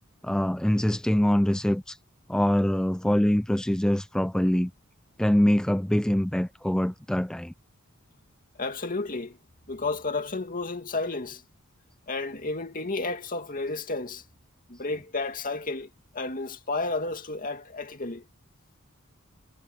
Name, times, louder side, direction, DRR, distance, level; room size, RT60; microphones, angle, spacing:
voice 1, 0.2-2.0 2.3-4.7 5.2-7.5, equal, 5° left, 0.3 m, -24 dB
voice 2, 8.6-9.4 9.7-11.4 12.1-14.2 14.7-18.2, left 3 dB, 40° left, 2.4 m, -32 dB
head